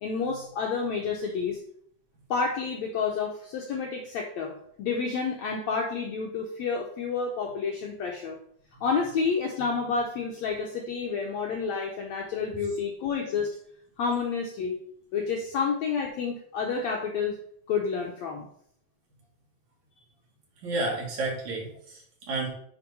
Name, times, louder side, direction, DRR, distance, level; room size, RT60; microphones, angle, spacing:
voice 1, 0.0-1.6 2.3-8.4 8.8-13.5 14.0-14.8 15.1-17.4 17.7-18.5, left 5 dB, 75° left, 1 dB, 1.7 m, -29 dB
voice 2, 20.6-22.5, right 2 dB, 55° right, -3 dB, 3.3 m, -31 dB
8.9 x 3.7 x 5.3 m, 0.64 s
omnidirectional pair, 4.0 m